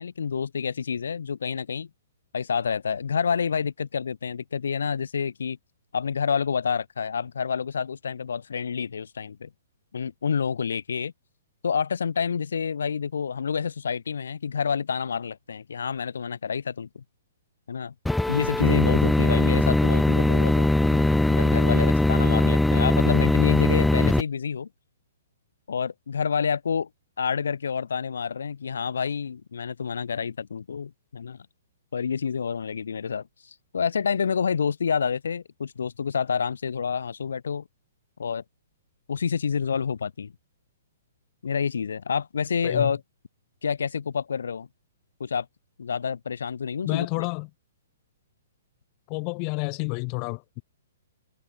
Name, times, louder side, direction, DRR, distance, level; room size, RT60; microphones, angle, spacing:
voice 1, 0.0-1.9 2.3-5.6 5.9-9.5 9.9-11.1 11.6-17.0 17.7-17.9 18.3-24.7 25.7-26.9 27.2-31.4 31.9-37.6 38.2-38.4 39.1-40.3 41.4-43.0 43.6-44.7 45.2-45.5 45.8-47.1, left 6 dB, 85° left, 5.8 m, -28 dB
sound 1, 18.1-24.2, left 2 dB, 5° left, 3.2 m, -20 dB
voice 2, 46.8-47.5 49.1-50.6, left 40 dB or more, 30° left, 6.8 m, -30 dB
hypercardioid pair, 145°, 0 cm